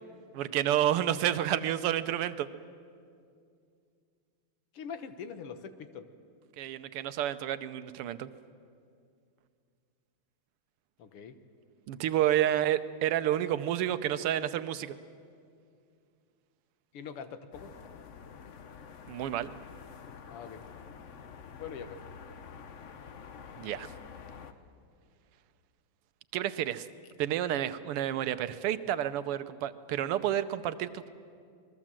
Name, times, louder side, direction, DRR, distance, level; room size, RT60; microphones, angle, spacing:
voice 1, 0.3-2.5 6.6-8.3 11.9-15.0 19.1-19.5 23.6-23.9 26.3-26.9 27.2-31.1, right 11 dB, 90° right, 12 dB, 1.8 m, -30 dB
voice 2, 4.7-6.1 11.0-11.4 12.5-12.6 16.9-17.7 20.3-20.6 21.6-22.0, left 6 dB, 85° left, 9 dB, 2.1 m, -43 dB
sound 1, 17.5-24.5, left 6 dB, 55° left, 0.8 m, -48 dB
26.5 x 21.0 x 7.5 m, 2.3 s
omnidirectional pair, 2.4 m